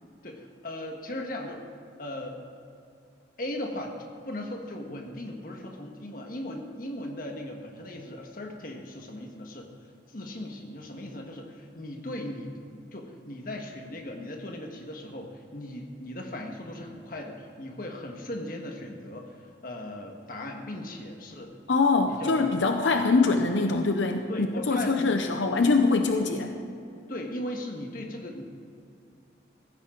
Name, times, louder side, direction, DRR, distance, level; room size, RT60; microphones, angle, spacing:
voice 1, 0.2-1.6 2.0-2.4 3.4-9.8 10.1-21.5 22.1-22.5 24.3-25.3 26.1-26.2 27.1-28.4, left 1 dB, 50° left, 2 dB, 1.6 m, -38 dB
voice 2, 21.7-26.5, left 3 dB, 85° left, 5 dB, 0.8 m, -23 dB
15.5 x 15.5 x 3.9 m, 2.5 s
head